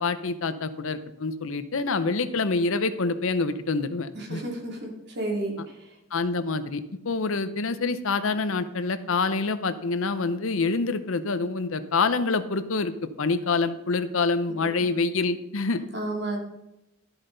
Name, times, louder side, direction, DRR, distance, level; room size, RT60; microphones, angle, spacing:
voice 1, 0.0-4.4 6.1-15.8, left 4 dB, 70° left, 12 dB, 0.7 m, -26 dB
voice 2, 4.1-4.9 5.1-5.9 15.9-16.4, right 2 dB, 50° right, -1 dB, 2.7 m, -31 dB
12.5 x 8.0 x 3.9 m, 0.92 s
head